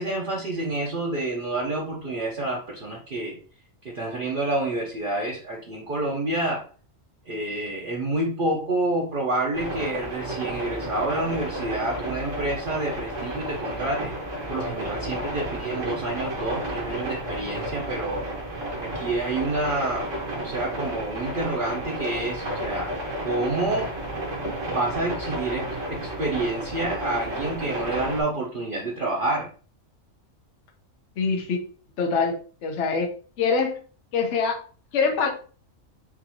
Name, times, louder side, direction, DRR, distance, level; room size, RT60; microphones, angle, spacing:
voice 1, 0.0-3.4 3.8-6.6 7.3-14.1 14.5-18.3 18.8-20.1 20.4-22.9 23.2-23.9 24.7-29.5, right 2 dB, 45° right, -4 dB, 1.0 m, -28 dB
sound 1, 9.5-28.2, right 1 dB, 70° right, 1.8 m, -32 dB
voice 2, 31.2-31.6 32.0-32.3 32.6-33.1 33.4-33.8 34.1-34.5 34.9-35.3, left 5 dB, 65° left, 2 dB, 1.2 m, -23 dB
6.2 x 2.6 x 2.9 m, 0.39 s
omnidirectional pair, 1.4 m